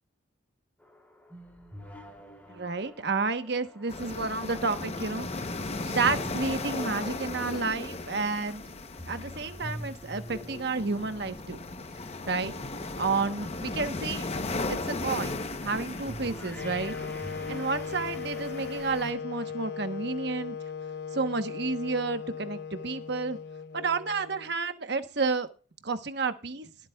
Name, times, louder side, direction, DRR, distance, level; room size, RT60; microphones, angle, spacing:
sound 1, 0.8-19.2, equal, 10° left, 2.6 m, -47 dB
voice 1, 2.5-5.3 5.8-8.6 9.1-11.6 12.3-12.5 13.0-14.3 14.7-17.0 17.5-20.6 21.1-23.4 23.7-25.5 25.8-26.7, right 4 dB, 55° right, 1.0 m, -30 dB
sound 2, 3.9-19.1, left 2 dB, 30° left, 0.8 m, -37 dB
Wind instrument woodwind instrument, 16.6-24.5, left 6 dB, 55° left, 0.4 m, -38 dB
21.0 x 8.1 x 2.3 m
head